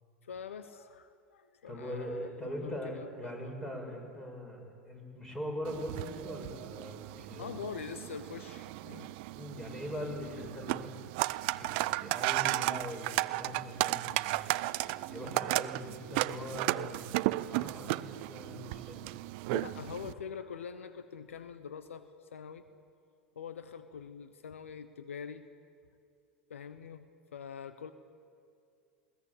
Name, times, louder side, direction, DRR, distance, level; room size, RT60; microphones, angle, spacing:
voice 1, 0.2-3.5 7.4-9.2 14.8-14.9 19.5-22.7 23.3-25.5 26.5-27.9, left 7 dB, 80° left, 11 dB, 1.1 m, -44 dB
voice 2, 1.7-7.5 9.3-10.9 11.5-14.4 15.1-19.1 19.5-19.6, equal, 10° left, 2 dB, 6.5 m, -41 dB
sound 1, 5.6-20.1, right 19 dB, 55° right, 0.6 m, -34 dB
21.0 x 19.0 x 8.6 m, 2.3 s
hypercardioid pair, 90°, 7 cm